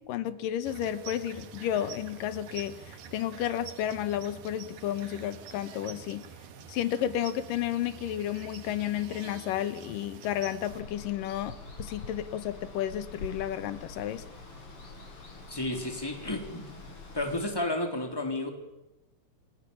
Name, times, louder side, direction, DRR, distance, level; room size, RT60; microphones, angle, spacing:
voice 1, 0.1-6.3 6.7-14.3, left 11 dB, 85° left, 2.8 m, -32 dB
sound 1, 0.6-10.8, right 7 dB, 85° right, 3.4 m, -47 dB
Water, 10.7-17.4, left 3 dB, 40° left, 5.8 m, -45 dB
voice 2, 15.5-16.7 17.1-18.5, left 1 dB, 5° left, 3.6 m, -32 dB
29.0 x 24.0 x 7.2 m
omnidirectional pair, 3.8 m